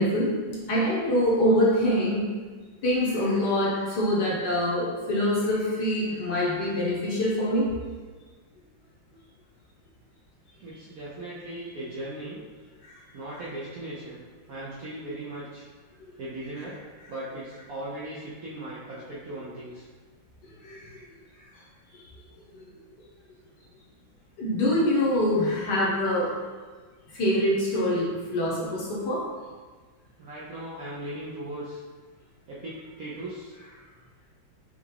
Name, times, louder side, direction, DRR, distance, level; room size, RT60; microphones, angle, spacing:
voice 1, 0.0-2.3 2.8-7.7 20.6-20.9 22.5-22.6 24.4-26.3 27.1-29.2, left 1 dB, 60° left, -6 dB, 1.4 m, -25 dB
voice 2, 10.6-12.4 13.1-14.2 14.5-15.7 16.2-16.8 17.1-19.9 30.2-31.8 32.5-33.5, right 1 dB, 65° right, -8 dB, 0.9 m, -38 dB
5.6 x 2.4 x 3.3 m, 1.4 s
omnidirectional pair, 2.2 m